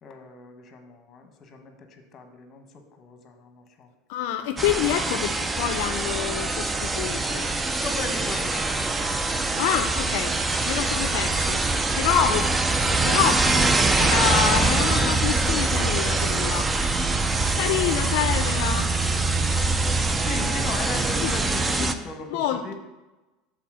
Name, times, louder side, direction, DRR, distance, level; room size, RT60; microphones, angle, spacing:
voice 1, 0.0-3.9 7.8-8.9 12.3-12.7 20.0-22.7, left 4 dB, 30° left, 6 dB, 1.1 m, -37 dB
voice 2, 4.1-7.5 9.6-10.3 10.7-12.4 12.8-16.7 17.5-18.9 21.2-21.4 21.9-22.0 22.3-22.7, left 10 dB, 70° left, 9 dB, 0.4 m, -27 dB
sound 1, 4.6-21.9, right 3 dB, 15° right, 0.4 m, -24 dB
7.0 x 4.0 x 6.1 m, 1.1 s
supercardioid pair, 135°, 0 cm